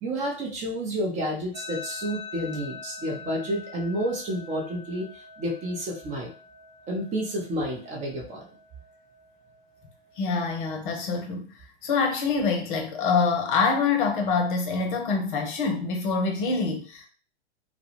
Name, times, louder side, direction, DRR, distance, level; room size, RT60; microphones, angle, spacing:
voice 1, 0.0-5.1 5.4-6.3 6.9-8.4, equal, 20° right, -2 dB, 0.7 m, -30 dB
sound 1, 1.5-10.6, left 5 dB, 15° left, 1.0 m, -44 dB
voice 2, 10.2-11.5 11.8-17.1, left 4 dB, 50° left, 3 dB, 0.7 m, -25 dB
2.3 x 2.1 x 3.0 m, 0.39 s
hypercardioid pair, 105°, 33 cm